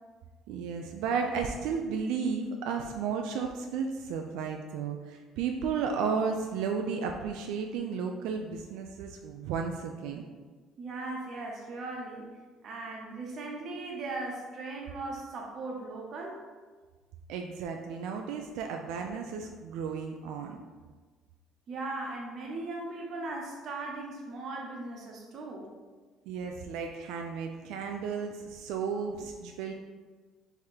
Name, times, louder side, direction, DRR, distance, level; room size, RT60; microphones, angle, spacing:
voice 1, 0.5-10.3 17.3-20.6 26.3-29.7, right 6 dB, 85° right, 3 dB, 0.3 m, -33 dB
voice 2, 10.8-12.3 12.6-16.5 21.7-26.0, right 2 dB, 40° right, 0 dB, 0.8 m, -38 dB
3.6 x 3.4 x 4.3 m, 1.4 s
cardioid pair, 165°, 0 cm